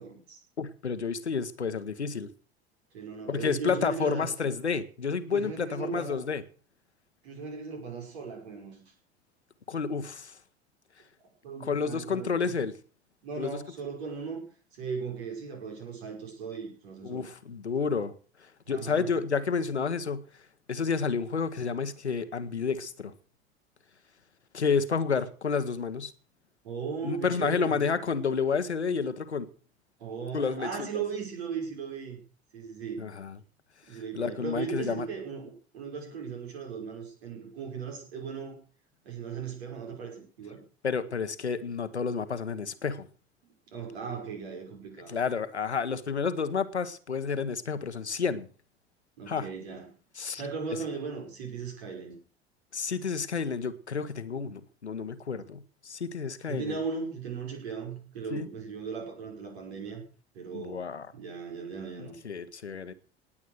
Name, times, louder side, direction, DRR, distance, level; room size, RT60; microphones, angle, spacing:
voice 1, 0.0-0.4 2.9-4.3 5.2-6.2 7.2-8.8 11.4-12.5 13.2-17.3 18.7-19.2 26.6-27.8 30.0-32.2 32.5-33.1 33.9-38.6 39.0-40.6 43.7-45.1 49.2-49.9 50.3-52.2 56.5-60.0 60.3-60.8 61.1-62.1, right 5 dB, 70° right, 5.7 m, -37 dB
voice 2, 0.6-2.3 3.3-6.4 9.7-10.4 11.6-12.7 13.4-13.6 17.0-18.1 18.4-20.2 20.7-23.1 24.5-26.1 27.0-29.5 30.3-31.0 33.0-33.4 33.9-35.1 40.8-43.1 45.1-48.5 49.3-49.5 50.2-50.4 50.7-50.8 52.7-56.8 58.3-58.5 60.5-61.1 62.0-62.9, left 5 dB, 85° left, 1.2 m, -30 dB
18.5 x 8.7 x 6.5 m
figure-of-eight pair, 70°, 33 cm